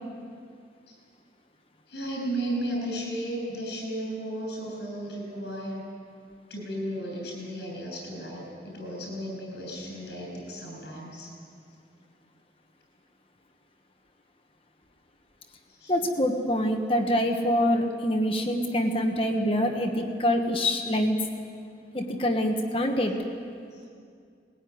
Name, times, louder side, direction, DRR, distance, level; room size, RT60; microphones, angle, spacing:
voice 1, 1.9-5.8 6.5-11.3 15.7-15.9 23.7-23.8, right 1 dB, 65° left, -1 dB, 7.2 m, -34 dB
voice 2, 15.9-21.2 21.9-23.1, equal, 30° left, 3 dB, 1.4 m, -25 dB
20.5 x 16.5 x 9.5 m, 2.3 s
head